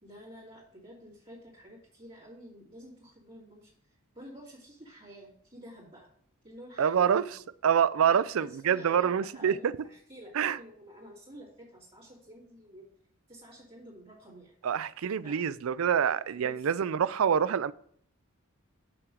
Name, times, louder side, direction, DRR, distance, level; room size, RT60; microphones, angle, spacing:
voice 1, 0.0-3.7 4.1-6.1 6.4-7.3 8.1-12.8 13.3-14.5 15.2-15.4 16.4-16.7, equal, 25° right, 2.6 m, -50 dB
voice 2, 6.8-7.2 7.6-9.7 10.3-10.6 14.6-17.7, right 8 dB, 75° right, 0.4 m, -26 dB
7.0 x 5.9 x 6.2 m
head